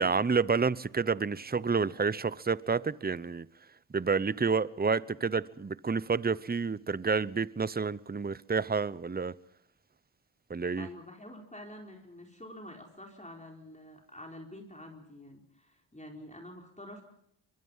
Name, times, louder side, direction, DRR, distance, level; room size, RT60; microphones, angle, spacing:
voice 1, 0.0-3.5 3.9-9.3 10.5-10.9, right 5 dB, 20° right, 0.7 m, -29 dB
voice 2, 10.7-17.0, left 1 dB, 15° left, 4.5 m, -47 dB
24.5 x 22.5 x 5.6 m
cardioid pair, 50°, 49 cm